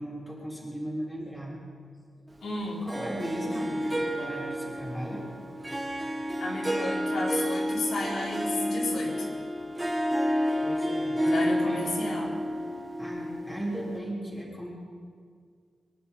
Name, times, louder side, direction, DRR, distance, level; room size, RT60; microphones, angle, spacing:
voice 1, 0.0-1.6 2.8-5.2 10.6-11.9 13.0-14.7, equal, 5° left, -4 dB, 3.6 m, -36 dB
voice 2, 2.4-2.9 6.4-9.3 11.2-12.3, left 2 dB, 75° left, -4 dB, 3.9 m, -33 dB
Harp, 2.9-14.0, equal, 15° right, 1.5 m, -30 dB
23.0 x 11.0 x 5.5 m, 2.1 s
wide cardioid pair, 145°, 0 cm